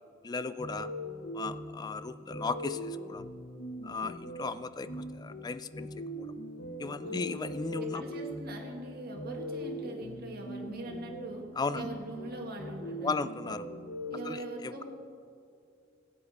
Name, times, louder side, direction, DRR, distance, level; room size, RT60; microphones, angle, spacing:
voice 1, 0.2-0.9 1.3-3.3 3.8-5.9 6.2-6.3 6.8-8.0 11.6-11.9 13.0-13.7 14.2-14.8, left 4 dB, 20° left, 14 dB, 0.3 m, -36 dB
sound 1, 0.6-14.3, equal, 55° left, 1.0 m, -41 dB
voice 2, 7.0-7.3 7.8-11.5 11.7-13.3 14.1-14.8, right 1 dB, 50° right, 1 dB, 1.6 m, -42 dB
15.5 x 8.8 x 4.1 m, 2.4 s
head